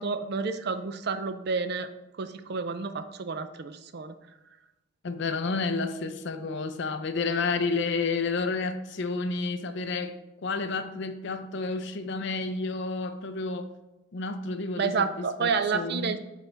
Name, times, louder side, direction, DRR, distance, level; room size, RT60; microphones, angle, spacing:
voice 1, 0.0-1.9 2.2-4.1 14.8-16.2, right 5 dB, 50° right, 0.4 m, -30 dB
voice 2, 5.0-13.7 14.1-16.1, left 4 dB, 55° left, 0.5 m, -30 dB
8.2 x 4.1 x 3.4 m
head